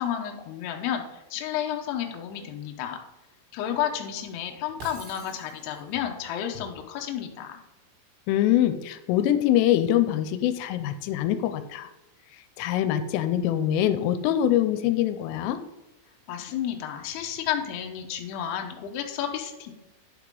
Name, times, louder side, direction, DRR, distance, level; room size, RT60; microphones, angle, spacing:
voice 1, 0.0-3.0 3.5-7.6 16.3-19.7, left 10 dB, 70° left, 3 dB, 2.7 m, -31 dB
Shatter, 4.8-6.0, right 2 dB, 60° right, 4.4 m, -45 dB
voice 2, 8.3-11.9 12.6-15.6, left 11 dB, 90° left, 10 dB, 3.3 m, -24 dB
11.0 x 4.9 x 5.3 m, 0.99 s
omnidirectional pair, 5.7 m